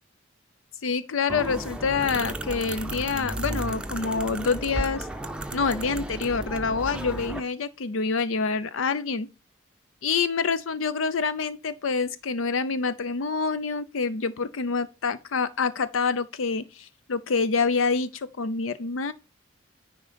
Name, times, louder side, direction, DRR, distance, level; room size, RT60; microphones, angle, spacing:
voice 1, 0.8-5.1 5.5-9.3 10.0-19.1, left 4 dB, 90° left, 0.6 m, -27 dB
sound 1, 1.3-7.4, right 1 dB, 5° right, 0.6 m, -33 dB
9.9 x 3.9 x 5.1 m
head